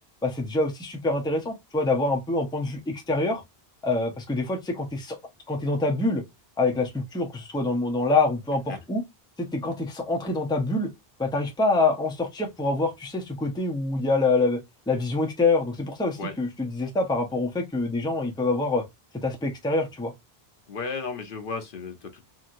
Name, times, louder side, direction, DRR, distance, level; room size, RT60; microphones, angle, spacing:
voice 1, 0.2-3.4 3.8-5.2 5.5-6.2 6.6-9.0 9.4-10.9 11.2-14.6 14.9-18.8 19.2-20.1, left 3 dB, 5° left, 0.6 m, -25 dB
voice 2, 20.7-22.3, left 4 dB, 60° left, 0.9 m, -34 dB
2.9 x 2.7 x 2.5 m
omnidirectional pair, 1.0 m